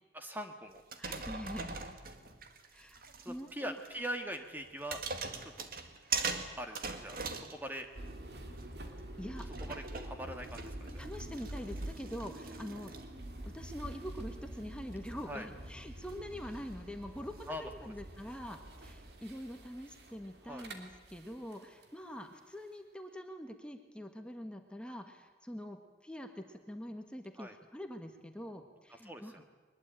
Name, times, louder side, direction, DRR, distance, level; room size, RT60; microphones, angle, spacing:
voice 1, 0.1-0.8 3.2-5.0 5.4-5.7 6.6-7.9 9.6-11.0 15.3-15.5 17.5-17.7 20.4-20.7 27.4-27.5 29.0-29.5, equal, 10° right, 5 dB, 1.6 m, -42 dB
sound 1, 0.8-3.5 3.8-3.9 4.6-8.2 8.5-19.3, right 4 dB, 55° right, 2.0 m, -43 dB
voice 2, 1.0-1.8 2.7-3.7 9.2-9.5 11.0-12.9 13.4-29.4, equal, 5° left, 5 dB, 1.6 m, -45 dB
sound 2, 7.9-21.9, right 1 dB, 70° right, 3.0 m, -47 dB
22.5 x 21.0 x 9.1 m, 1.3 s
head